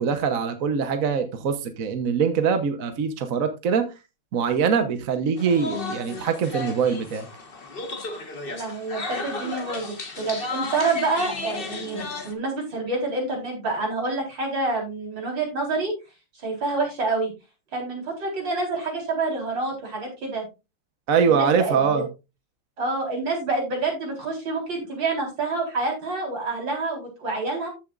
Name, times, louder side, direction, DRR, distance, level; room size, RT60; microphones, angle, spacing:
voice 1, 0.0-3.8 4.3-7.3 21.1-22.1, right 6 dB, 50° right, 1.2 m, -23 dB
sound 1, 5.4-12.3, left 3 dB, 30° left, 1.3 m, -34 dB
voice 2, 8.5-15.9 16.4-17.3 17.7-20.5 21.2-22.0 22.8-27.7, right 3 dB, 70° right, 4.8 m, -27 dB
14.0 x 7.0 x 2.5 m
omnidirectional pair, 2.1 m